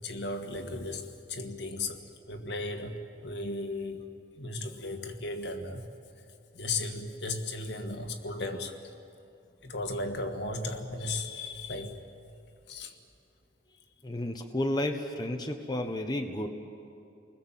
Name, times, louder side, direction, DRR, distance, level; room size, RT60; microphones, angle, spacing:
voice 1, 0.0-2.0 2.3-4.1 4.4-5.9 6.5-8.7 9.6-12.0 12.7-12.9, left 2 dB, 70° left, 2.0 m, -35 dB
voice 2, 14.0-16.5, left 1 dB, 25° left, 1.1 m, -32 dB
29.5 x 20.5 x 7.5 m
head